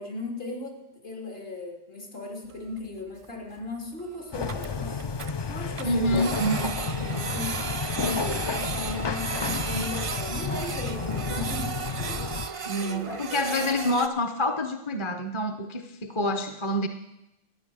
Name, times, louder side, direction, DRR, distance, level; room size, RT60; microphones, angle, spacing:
voice 1, 0.0-5.0 5.5-6.6 6.9-7.6 7.9-11.7 12.1-12.2 12.7-13.2, left 2 dB, 65° left, 0 dB, 3.3 m, -37 dB
Printer, 2.5-2.6 2.8-2.9 3.2-3.3 3.6-3.7 4.0-4.1 4.3-5.3 5.8-14.1, right 6 dB, 40° right, 0.5 m, -35 dB
sound 1, 4.3-12.5, left 5 dB, 45° left, 0.3 m, -31 dB
voice 2, 5.8-6.7 12.7-16.9, equal, 30° left, 7 dB, 0.9 m, -27 dB
13.0 x 9.5 x 7.7 m, 0.90 s
omnidirectional pair, 1.1 m